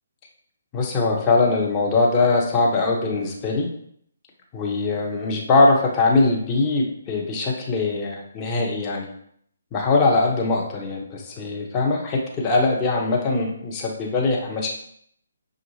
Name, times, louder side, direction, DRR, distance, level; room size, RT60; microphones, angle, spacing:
voice 1, 0.7-3.7 4.5-9.1 9.7-14.7, left 3 dB, 20° left, -2 dB, 0.8 m, -21 dB
5.9 x 2.4 x 3.1 m, 0.67 s
figure-of-eight pair, 140°, 0 cm